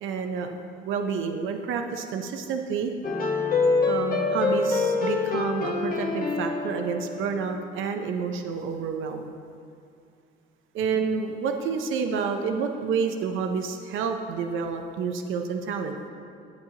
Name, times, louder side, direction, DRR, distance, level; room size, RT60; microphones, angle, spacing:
voice 1, 0.0-2.9 3.9-9.3 10.7-16.0, right 5 dB, 80° right, 5 dB, 0.6 m, -29 dB
sound 1, 3.0-7.7, left 4 dB, 45° left, 1.1 m, -26 dB
10.5 x 8.4 x 2.8 m, 2.4 s
cardioid pair, 90°, 20 cm